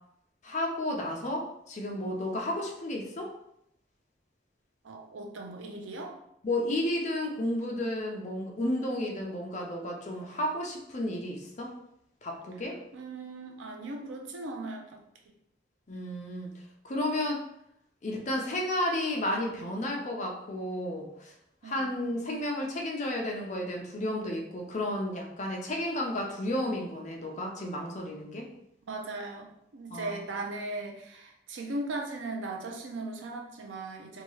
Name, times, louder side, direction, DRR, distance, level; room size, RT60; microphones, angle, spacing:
voice 1, 0.4-3.3 6.4-11.7 12.2-12.8 15.9-16.5 16.8-17.4 18.0-21.3 21.6-28.5 29.9-30.2, left 1 dB, 40° left, 0 dB, 0.5 m, -32 dB
voice 2, 4.8-6.2 12.9-15.0 21.6-21.9 28.9-34.2, right 2 dB, 90° right, 2 dB, 0.5 m, -38 dB
2.8 x 2.3 x 3.0 m, 0.77 s
head